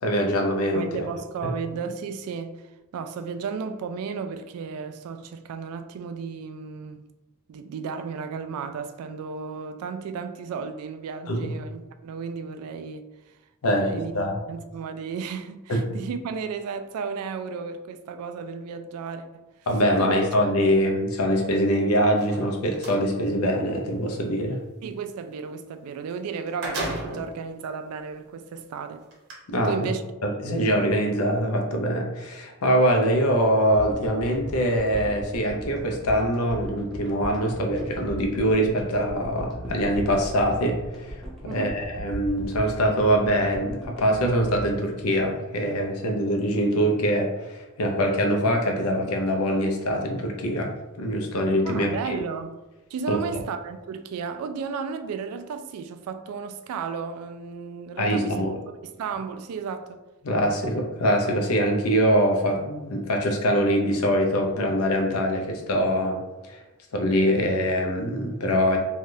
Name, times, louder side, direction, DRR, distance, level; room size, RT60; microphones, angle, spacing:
voice 1, 0.0-0.9 1.4-1.5 11.3-11.5 13.6-14.4 15.7-15.8 19.7-24.6 29.5-29.9 30.2-41.2 41.4-52.2 53.1-53.2 58.0-58.5 60.2-66.2 66.5-66.6 66.9-68.8, equal, 90° left, 0.6 m, -23 dB
voice 2, 0.7-7.1 7.5-13.1 13.7-14.1 14.5-19.5 20.0-20.2 24.8-29.1 29.6-30.0 41.4-41.8 51.6-52.6 52.9-58.5 58.8-60.0, right 5 dB, 90° right, 0.3 m, -34 dB
sound 1, 22.1-23.0 25.9-26.0 26.3-27.4 28.1-28.2 29.1-29.3, right 1 dB, 55° right, 0.7 m, -33 dB
sound 2, 33.7-46.1, right 1 dB, ahead, 0.6 m, -39 dB
3.3 x 2.3 x 2.6 m
head